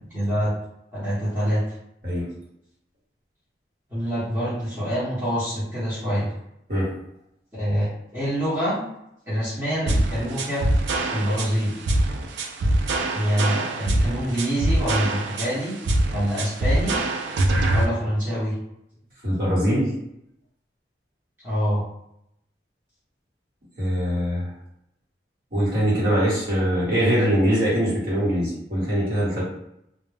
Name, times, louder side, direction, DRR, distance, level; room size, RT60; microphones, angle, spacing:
voice 1, 0.1-0.5 0.9-1.6 3.9-6.3 7.5-8.9 9.3-10.7 11.1-11.8 13.1-15.8 16.1-17.0 17.7-18.6 21.4-21.8, equal, 15° right, -11 dB, 0.8 m, -25 dB
sound 1, 9.9-17.9, right 1 dB, 80° right, 0.3 m, -23 dB
voice 2, 19.2-19.9 23.8-24.5 25.5-29.4, equal, 50° right, -7 dB, 1.1 m, -22 dB
2.2 x 2.0 x 3.2 m, 0.79 s
head